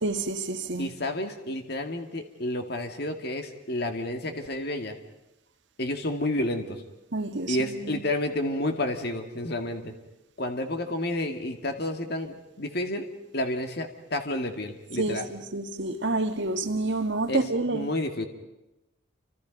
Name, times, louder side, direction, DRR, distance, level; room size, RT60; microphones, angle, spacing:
voice 1, 0.0-0.9 7.1-8.0 15.0-17.9, right 2 dB, 65° right, 1.7 m, -29 dB
voice 2, 0.8-5.0 5.8-6.8 7.5-9.9 10.4-13.1 13.3-15.3 17.3-17.4 17.7-18.3, left 1 dB, 55° left, 2.2 m, -30 dB
29.5 x 26.0 x 5.3 m
head